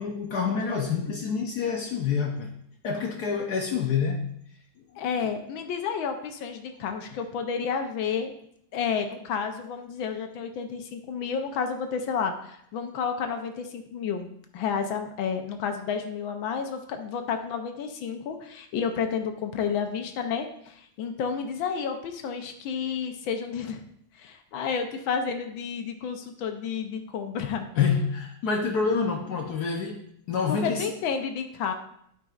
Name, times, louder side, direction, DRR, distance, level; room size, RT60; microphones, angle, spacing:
voice 1, 0.0-2.5 2.8-4.3 27.7-30.9, left 5 dB, 65° left, 2 dB, 1.1 m, -27 dB
voice 2, 5.0-8.3 8.7-14.3 14.5-23.8 24.2-27.7 30.5-31.7, left 6 dB, 80° left, 6 dB, 1.5 m, -31 dB
12.0 x 5.2 x 2.4 m, 0.70 s
omnidirectional pair, 2.1 m